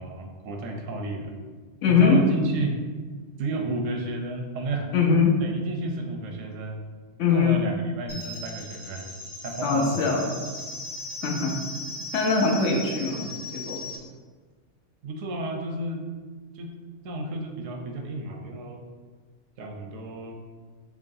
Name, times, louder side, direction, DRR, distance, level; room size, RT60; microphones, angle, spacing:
voice 1, 0.0-1.3 1.9-2.8 3.4-4.9 5.4-6.8 7.3-9.1 9.4-10.0 10.8-10.9 15.0-16.1 16.5-16.8 17.0-18.8 19.6-20.4, right 2 dB, 85° right, 3 dB, 1.0 m, -32 dB
voice 2, 1.8-2.4 4.9-5.4 7.2-7.6 9.6-10.3 11.2-11.6 12.1-13.8, left 5 dB, 75° left, 0 dB, 0.9 m, -22 dB
sound 1, 8.1-14.0, left 2 dB, 30° left, 0.6 m, -38 dB
4.7 x 3.0 x 2.6 m, 1.5 s
omnidirectional pair, 1.3 m